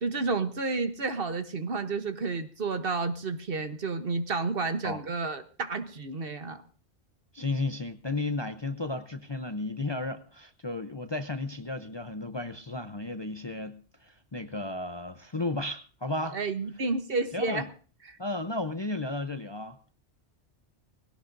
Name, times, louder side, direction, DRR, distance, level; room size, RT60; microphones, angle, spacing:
voice 1, 0.0-6.6 16.3-17.7 18.1-18.2, right 3 dB, 50° right, 1.2 m, -31 dB
voice 2, 7.3-16.4 17.3-17.6 18.2-19.8, left 2 dB, 30° left, 0.5 m, -33 dB
19.5 x 17.5 x 2.6 m
omnidirectional pair, 1.3 m